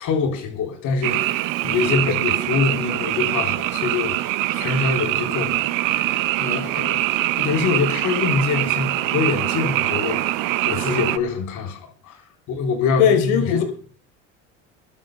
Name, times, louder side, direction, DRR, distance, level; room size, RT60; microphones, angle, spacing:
voice 1, 0.0-7.0 7.4-12.2 12.5-13.6, left 5 dB, 55° left, 4.6 m, -25 dB
Frog, 1.0-11.2, right 16 dB, 60° right, 0.8 m, -23 dB
voice 2, 13.0-13.6, left 8 dB, 75° left, 4.4 m, -18 dB
26.0 x 12.5 x 2.4 m
supercardioid pair, 95°, 36 cm